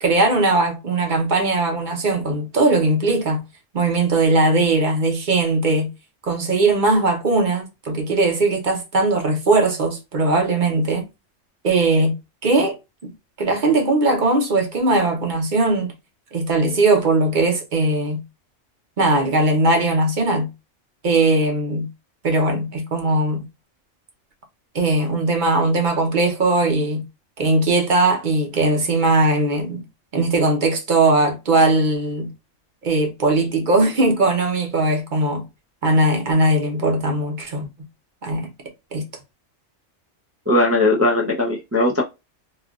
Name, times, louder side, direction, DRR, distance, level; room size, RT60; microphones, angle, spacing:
voice 1, 0.0-3.4 3.7-5.9 6.2-11.0 11.6-12.1 12.4-12.8 13.4-15.9 16.3-18.2 19.0-20.5 21.0-21.9 22.2-23.4 24.7-27.0 27.4-29.8 30.1-32.3 32.8-35.4 35.8-37.7 38.2-38.5 38.9-39.0, right 2 dB, 45° right, 0.9 m, -19 dB
voice 2, 40.5-42.0, left 2 dB, 20° right, 0.3 m, -18 dB
3.3 x 2.4 x 2.3 m
omnidirectional pair, 1.3 m